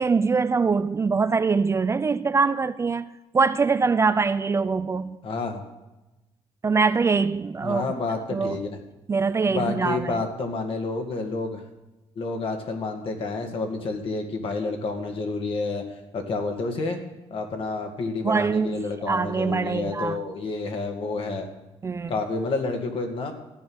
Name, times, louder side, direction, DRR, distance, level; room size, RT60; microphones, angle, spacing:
voice 1, 0.0-5.2 6.6-7.9 8.3-8.6 9.1-10.2 18.2-20.2 21.8-22.1, right 4 dB, 25° right, 0.4 m, -23 dB
voice 2, 5.2-5.6 7.6-8.7 9.5-11.6 12.2-15.8 16.1-17.0 17.3-21.5 22.1-23.3, left 3 dB, 55° left, 2.1 m, -29 dB
14.0 x 9.2 x 6.3 m
cardioid pair, 115°, 11 cm